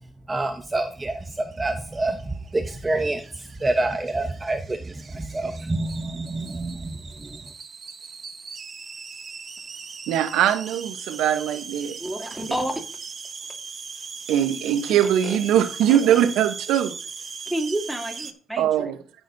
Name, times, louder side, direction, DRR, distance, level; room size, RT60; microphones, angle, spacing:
voice 1, 0.3-3.2 3.6-7.4, right 2 dB, 20° right, 0.9 m, -27 dB
sound 1, 1.0-18.3, right 5 dB, 40° right, 1.1 m, -39 dB
voice 2, 10.1-12.0 14.3-16.9 18.6-19.0, right 10 dB, 90° right, 0.8 m, -21 dB
voice 3, 12.0-12.7 14.9-15.4 15.9-16.0 17.5-18.9, right 1 dB, ahead, 2.8 m, -30 dB
14.5 x 6.1 x 2.7 m
cardioid pair, 90°, 0 cm